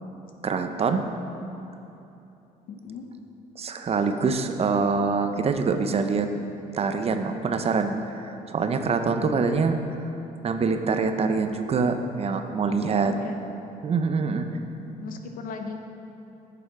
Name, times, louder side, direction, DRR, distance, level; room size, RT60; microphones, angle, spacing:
voice 1, 0.4-1.0 3.6-6.3 6.7-9.8 10.4-13.1 13.8-14.5, right 5 dB, 40° right, 7 dB, 0.6 m, -25 dB
voice 2, 2.7-3.1 9.2-9.5 13.0-13.4 14.9-15.8, left 5 dB, 65° left, 5 dB, 0.9 m, -37 dB
8.6 x 6.9 x 4.7 m, 2.9 s
cardioid pair, 85°, 16 cm